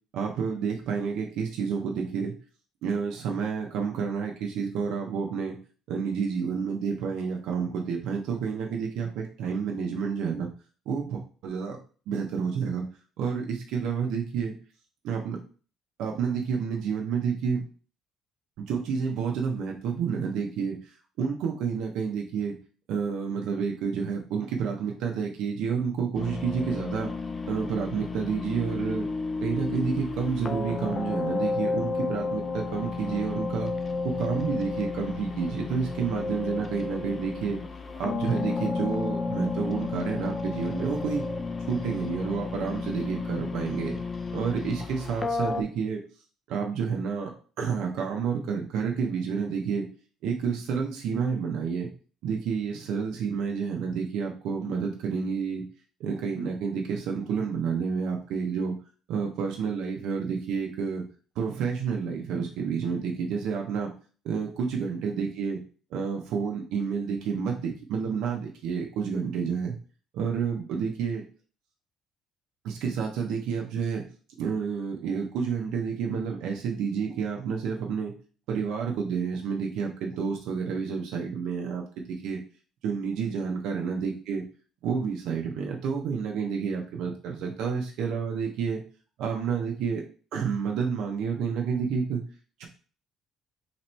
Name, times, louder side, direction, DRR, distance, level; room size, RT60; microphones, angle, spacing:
voice 1, 0.1-2.3 2.8-5.6 5.9-10.5 10.9-11.8 12.1-12.9 13.2-14.5 15.0-15.4 16.0-17.6 18.6-22.5 22.9-27.1 27.5-29.1 29.4-33.7 34.0-37.6 38.0-41.2 41.7-44.0 44.3-46.0 46.5-47.3 47.6-49.9 50.2-51.9 52.2-55.6 56.0-58.7 59.1-61.0 61.4-63.9 64.2-65.6 65.9-69.8 70.1-71.2 72.6-74.0 74.4-78.1 78.5-82.4 82.8-84.4 84.8-88.8 89.2-90.0 90.3-92.2 92.6-92.7, right 6 dB, 75° right, 1 dB, 0.6 m, -29 dB
hard(drive)decisions, 26.1-45.6, left 4 dB, 25° left, 0.4 m, -32 dB
3.0 x 3.0 x 4.2 m, 0.39 s
cardioid pair, 140°, 0 cm